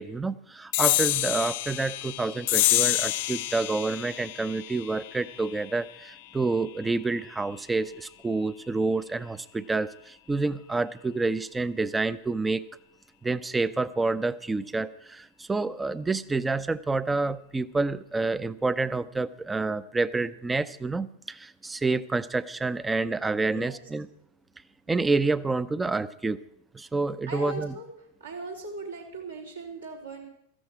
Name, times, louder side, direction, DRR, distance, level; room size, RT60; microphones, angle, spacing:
voice 1, 0.0-12.6 13.2-24.0 24.9-26.4 26.7-27.7, right 3 dB, 10° right, 17 dB, 0.6 m, -28 dB
sound 1, 0.7-7.6, left 17 dB, 50° left, 0.6 m, -29 dB
voice 2, 23.5-23.9 27.2-30.3, right 3 dB, 80° right, -2 dB, 3.8 m, -39 dB
16.5 x 14.0 x 4.8 m, 0.75 s
figure-of-eight pair, 90°, 0 cm